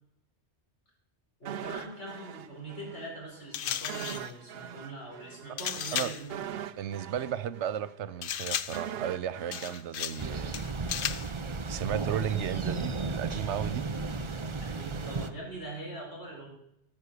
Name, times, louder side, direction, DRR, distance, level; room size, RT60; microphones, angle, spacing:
voice 1, 1.4-6.5 14.6-16.5, right 2 dB, 80° left, -2 dB, 5.2 m, -42 dB
sound 1, 1.5-3.1 3.4-3.5 3.9-11.0 11.3-11.4, right 10 dB, 65° right, 0.8 m, -42 dB
sound 2, 3.5-4.3 5.6-6.3 8.2-8.9 9.5-10.3 10.5-11.3, left 9 dB, 60° left, 0.7 m, -34 dB
voice 2, 5.5-6.1 6.8-10.6 11.7-13.9, right 10 dB, 90° right, 14 dB, 1.0 m, -34 dB
Thunder, 10.2-15.3, right 3 dB, 30° right, 0.7 m, -34 dB
14.0 x 7.1 x 6.7 m, 0.80 s
omnidirectional pair, 1.1 m